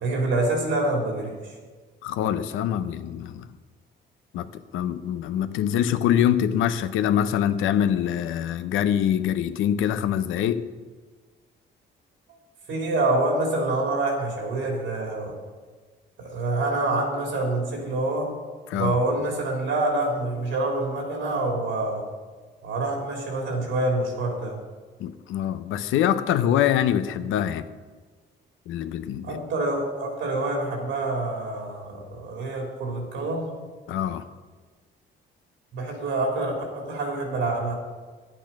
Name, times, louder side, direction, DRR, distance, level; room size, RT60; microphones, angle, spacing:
voice 1, 0.0-1.5 12.7-15.3 16.2-18.3 18.7-22.0 22.6-24.6 29.2-33.5 35.7-37.7, right 2 dB, 80° right, 3.6 m, -26 dB
voice 2, 2.0-3.5 4.3-10.7 18.7-19.0 25.0-27.7 28.7-29.4 33.9-34.2, left 10 dB, 90° left, 0.7 m, -24 dB
10.5 x 8.9 x 6.0 m
cardioid pair, 90°, 20 cm